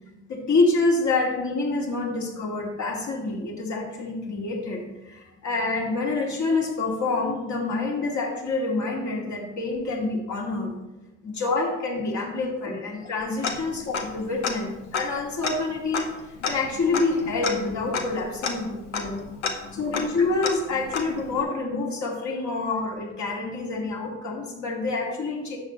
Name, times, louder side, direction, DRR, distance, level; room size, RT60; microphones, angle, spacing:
voice 1, 0.3-10.8 11.2-16.1 16.5-19.2 19.7-25.6, left 3 dB, 55° left, -1 dB, 2.4 m, -27 dB
Tick-tock, 13.4-14.2 14.4-14.5 14.9-21.4, left 5 dB, 85° left, 0.8 m, -31 dB
10.5 x 7.3 x 3.2 m, 1.0 s
hypercardioid pair, 45°, 35 cm